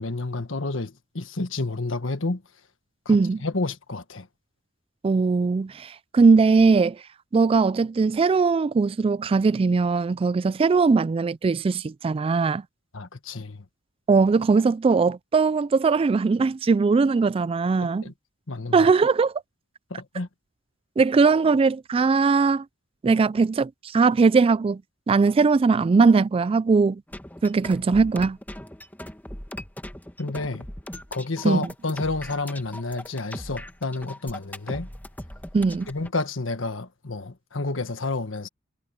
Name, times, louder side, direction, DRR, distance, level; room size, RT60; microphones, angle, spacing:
voice 1, 0.0-2.4 3.0-4.3 12.9-13.6 17.8-18.1 18.5-18.9 19.9-20.3 30.2-30.7 31.1-34.9 35.9-38.5, left 3 dB, 75° left, 1.5 m, -30 dB
voice 2, 3.1-3.4 5.0-7.0 7.3-12.6 14.1-18.0 18.7-19.3 21.0-22.6 23.0-24.8 25.1-27.0 27.4-28.4 31.4-31.6 35.5-35.9, right 4 dB, 30° right, 0.3 m, -20 dB
sound 1, 27.1-36.1, left 1 dB, 10° left, 1.7 m, -39 dB
head